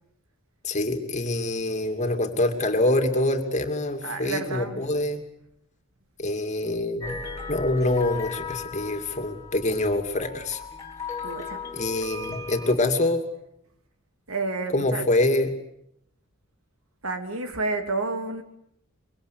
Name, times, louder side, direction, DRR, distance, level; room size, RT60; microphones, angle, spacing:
voice 1, 0.6-5.2 6.2-10.6 11.7-13.2 14.7-15.5, left 2 dB, 35° left, 2.7 m, -25 dB
voice 2, 4.0-4.8 11.2-11.6 14.3-15.0 17.0-18.4, right 3 dB, 80° right, 2.9 m, -30 dB
sound 1, 7.0-12.7, left 4 dB, 15° left, 3.4 m, -37 dB
25.0 x 23.5 x 8.4 m
head